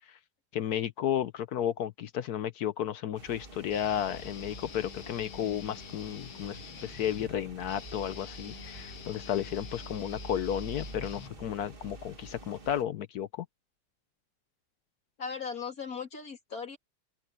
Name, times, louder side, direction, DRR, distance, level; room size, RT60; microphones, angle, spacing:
voice 1, 0.5-13.5, left 10 dB, 65° left, 1.0 m, -33 dB
sound 1, 3.1-12.8, right 2 dB, 30° right, 1.9 m, -47 dB
Guitar, 3.7-11.7, left 8 dB, 80° left, 2.0 m, -47 dB
voice 2, 15.2-16.8, left 6 dB, 50° left, 3.2 m, -38 dB
omnidirectional pair, 2.1 m